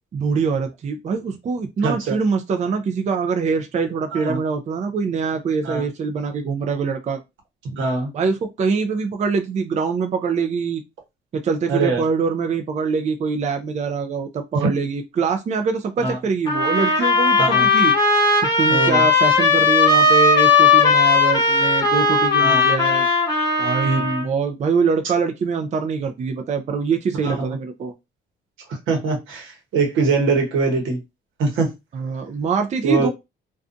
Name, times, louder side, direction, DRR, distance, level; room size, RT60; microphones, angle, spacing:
voice 1, 0.1-7.2 8.1-10.8 11.3-17.9 18.6-23.1 23.6-27.9 31.9-33.1, right 5 dB, 35° right, 0.4 m, -24 dB
voice 2, 1.8-2.2 4.1-4.4 5.6-5.8 7.7-8.1 11.7-12.0 14.6-14.7 16.0-16.2 17.4-17.7 18.7-19.0 22.4-22.7 23.8-24.3 27.2-27.4 28.9-31.0 31.4-31.7 32.8-33.1, right 3 dB, 80° right, 0.9 m, -22 dB
sound 1, 16.5-24.2, left 3 dB, 20° left, 1.1 m, -17 dB
2.5 x 2.3 x 2.5 m
cardioid pair, 90°, 20 cm